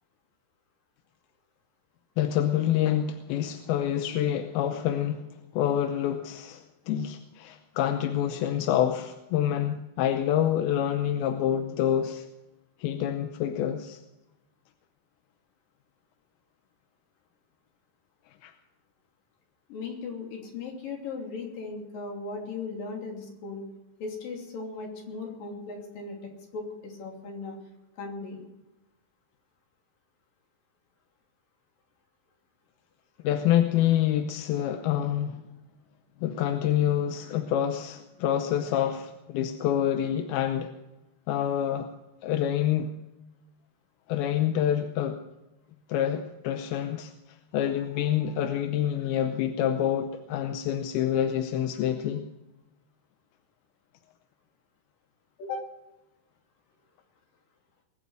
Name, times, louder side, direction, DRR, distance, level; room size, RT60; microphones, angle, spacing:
voice 1, 2.2-5.3 5.5-12.3 12.8-14.0 18.4-18.5 33.2-35.4 36.2-40.7 41.3-41.9 42.2-42.9 44.1-45.2 45.9-47.1 47.5-52.3, left 10 dB, 75° left, 7 dB, 2.5 m, -27 dB
voice 2, 19.7-23.7 24.0-27.6 28.0-28.4 55.4-55.7, left 4 dB, 55° left, 1 dB, 4.5 m, -37 dB
21.5 x 9.6 x 6.3 m, 1.0 s
omnidirectional pair, 4.9 m